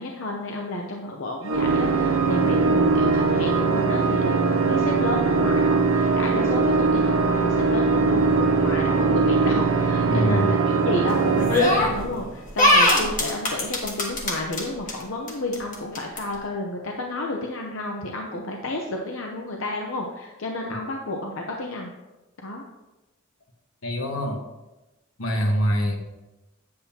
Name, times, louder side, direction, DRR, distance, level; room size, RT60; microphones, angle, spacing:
voice 1, 0.0-21.9 22.4-22.6, left 2 dB, 65° left, 1 dB, 0.8 m, -31 dB
Organ, 1.5-12.4, right 4 dB, 75° right, 0.9 m, -21 dB
voice 2, 10.1-10.5 23.8-24.4 25.2-26.0, equal, 85° left, 3 dB, 1.2 m, -24 dB
sound 1, 11.5-12.1 12.6-14.6 14.9-15.0 15.3-16.2, left 1 dB, 40° left, 1.3 m, -19 dB
8.5 x 7.7 x 2.8 m, 1.0 s
head